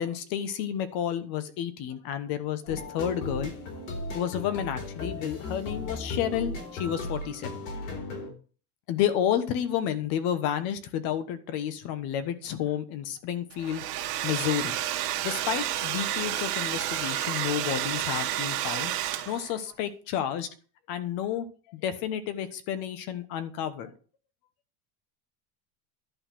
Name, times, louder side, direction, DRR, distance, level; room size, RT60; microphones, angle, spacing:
voice 1, 0.0-3.5 4.1-7.5 8.9-13.8 14.2-14.8 15.2-18.9 19.3-20.5 20.9-23.9, left 10 dB, 50° left, 11 dB, 1.2 m, -31 dB
sound 1, 2.7-8.3, left 2 dB, 90° left, 4.2 m, -36 dB
Domestic sounds home sounds, 13.5-19.6, right 13 dB, 75° right, 1.8 m, -30 dB
11.0 x 4.2 x 7.5 m, 0.39 s
supercardioid pair, 145°, 46 cm